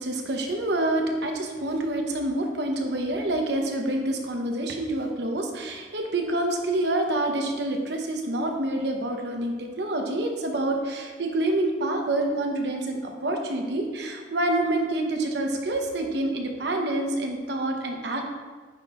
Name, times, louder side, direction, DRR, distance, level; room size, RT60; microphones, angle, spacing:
voice 1, 0.0-18.3, right 1 dB, 70° right, 3 dB, 0.9 m, -27 dB
9.1 x 5.8 x 2.5 m, 1.4 s
head